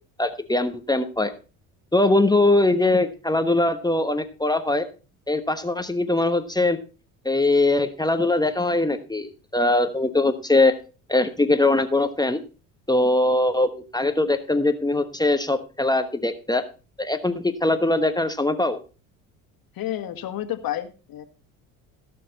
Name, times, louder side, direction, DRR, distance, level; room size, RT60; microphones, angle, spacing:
voice 1, 0.2-1.3 1.9-4.9 5.3-6.8 7.2-10.7 11.1-12.4 12.9-16.6 17.0-18.8, left 2 dB, 10° left, 8 dB, 1.2 m, -21 dB
voice 2, 19.7-21.2, left 12 dB, 55° left, 8 dB, 1.9 m, -30 dB
17.0 x 6.7 x 4.0 m, 0.34 s
hypercardioid pair, 70°, 43 cm